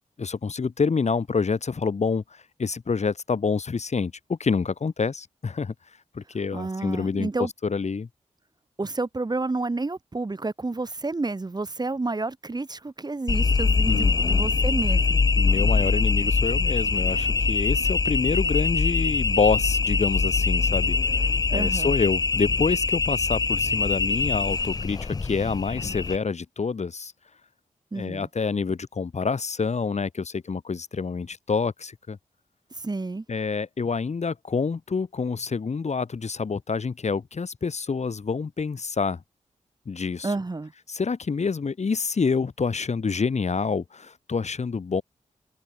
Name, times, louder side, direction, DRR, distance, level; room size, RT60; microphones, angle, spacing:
voice 1, 0.2-5.7 6.1-8.1 13.9-14.5 15.3-21.3 21.5-27.1 27.9-32.2 33.3-39.2 39.9-40.3 40.9-45.0, left 5 dB, 60° left, 4.4 m, -27 dB
voice 2, 6.5-7.5 8.8-15.2 21.5-21.9 27.9-28.3 32.7-33.2 40.2-40.7, right 3 dB, 30° right, 1.6 m, -30 dB
sound 1, 13.3-26.2, left 4 dB, 30° left, 0.4 m, -23 dB
cardioid pair, 50°, 13 cm